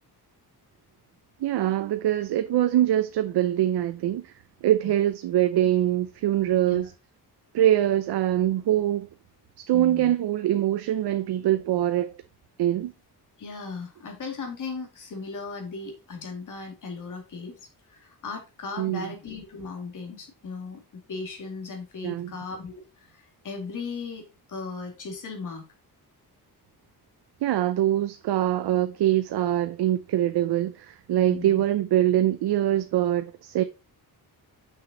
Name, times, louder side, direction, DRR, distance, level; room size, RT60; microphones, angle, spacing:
voice 1, 1.4-4.3 4.6-6.9 7.5-9.1 9.6-12.1 12.6-12.9 18.8-19.1 22.0-22.3 27.4-33.6, right 12 dB, 80° right, 0.6 m, -23 dB
voice 2, 9.7-10.1 13.4-25.7 31.3-31.6, left 4 dB, 50° left, 2.3 m, -37 dB
6.4 x 6.0 x 3.8 m
wide cardioid pair, 175°, 39 cm